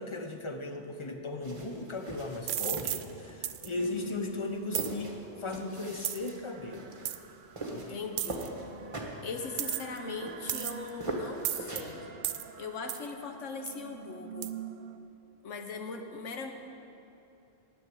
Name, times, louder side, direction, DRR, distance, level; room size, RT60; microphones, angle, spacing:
voice 1, 0.0-5.1 5.4-6.9 7.7-8.0, left 2 dB, 30° left, 4 dB, 0.8 m, -37 dB
sound 1, 1.4-12.0, right 1 dB, 25° right, 1.3 m, -42 dB
sound 2, 2.5-3.0 3.4-3.7 4.7-4.9 6.0-6.3 7.1-7.2 8.2-8.5 9.6-10.0 10.5-10.9 11.4-11.8 12.2-12.5 12.9-13.1 13.7-13.8 14.4-14.5, right 11 dB, 90° right, 0.9 m, -33 dB
sound 3, 3.1-15.0, right 8 dB, 55° right, 0.6 m, -48 dB
voice 2, 7.7-8.5 9.2-12.1 12.6-14.5 15.4-16.5, left 4 dB, 80° left, 5 dB, 1.3 m, -40 dB
9.8 x 8.0 x 9.2 m, 2.9 s
omnidirectional pair, 1.3 m